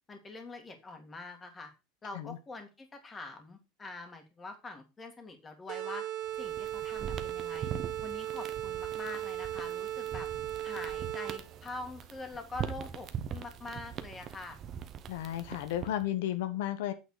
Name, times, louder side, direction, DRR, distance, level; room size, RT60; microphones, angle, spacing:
voice 1, 0.1-1.7 2.0-6.0 6.4-7.7 8.0-10.3 10.6-14.6, left 3 dB, 15° left, 1.9 m, -44 dB
sound 1, 5.7-11.6, right 12 dB, 50° right, 1.2 m, -37 dB
sound 2, 6.3-16.1, right 8 dB, 30° right, 0.8 m, -42 dB
voice 2, 15.1-16.9, left 12 dB, 80° left, 0.9 m, -33 dB
8.6 x 4.0 x 6.5 m
supercardioid pair, 150°, 0 cm